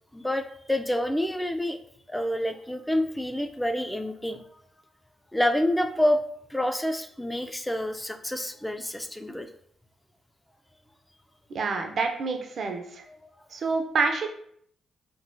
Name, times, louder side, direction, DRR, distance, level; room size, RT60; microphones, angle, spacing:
voice 1, 0.1-1.8 2.1-4.5 5.3-6.2 6.5-9.5 13.1-13.3, left 1 dB, 5° left, 7 dB, 0.4 m, -28 dB
voice 2, 11.5-13.0 13.5-14.3, right 4 dB, 60° right, 4 dB, 0.5 m, -27 dB
3.7 x 2.4 x 2.6 m, 0.66 s
supercardioid pair, 55°, 0 cm